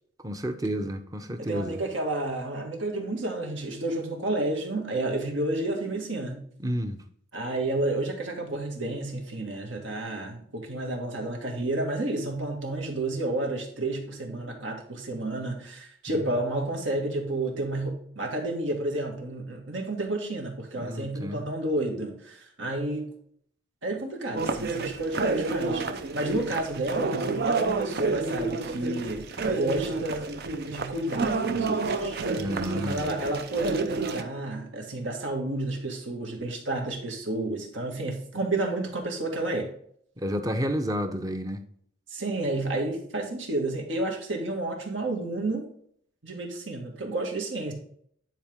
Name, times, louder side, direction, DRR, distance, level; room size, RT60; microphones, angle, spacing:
voice 1, 0.2-1.8 6.6-7.0 16.1-16.2 20.8-21.4 32.3-33.1 40.2-41.6, equal, 20° right, 0.7 m, -31 dB
voice 2, 1.4-6.4 7.3-23.1 23.8-25.8 26.1-30.3 30.7-32.2 32.7-39.7 42.1-45.7 46.2-47.7, right 2 dB, 75° right, 2.1 m, -31 dB
sound 1, 24.4-34.2, right 3 dB, 55° right, 0.7 m, -29 dB
10.0 x 4.7 x 3.6 m
head